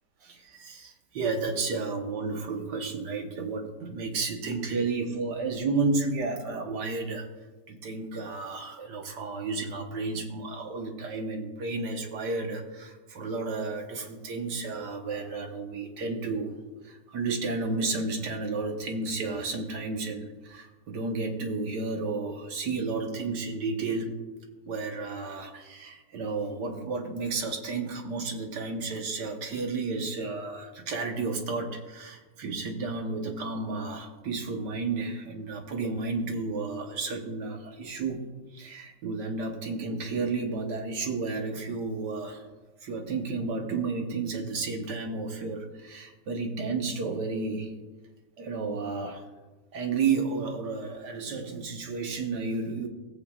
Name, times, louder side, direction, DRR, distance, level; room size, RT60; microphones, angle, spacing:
voice 1, 0.2-7.3 7.7-16.6 16.8-24.2 24.7-38.2 38.5-42.4 42.8-47.7 48.4-49.2 49.7-52.9, right 3 dB, 80° right, 3 dB, 1.8 m, -32 dB
17.0 x 8.0 x 2.4 m, 1.2 s
omnidirectional pair, 1.8 m